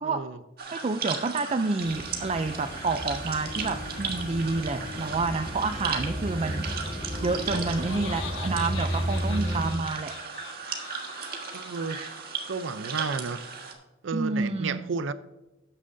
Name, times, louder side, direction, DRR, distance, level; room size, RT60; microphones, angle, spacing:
voice 1, 0.0-0.4 11.5-12.0 12.5-13.4 14.0-15.1, right 4 dB, 75° right, 14 dB, 0.6 m, -32 dB
sound 1, 0.6-13.7, right 5 dB, 50° right, 1.6 m, -37 dB
voice 2, 0.7-10.1 14.1-14.8, right 3 dB, 35° right, 7 dB, 0.4 m, -29 dB
sound 2, 1.8-9.7, equal, 40° left, 2.2 m, -33 dB
Laughter, 7.2-12.5, left 6 dB, 70° left, 1.0 m, -43 dB
13.0 x 9.0 x 2.7 m, 1.0 s
head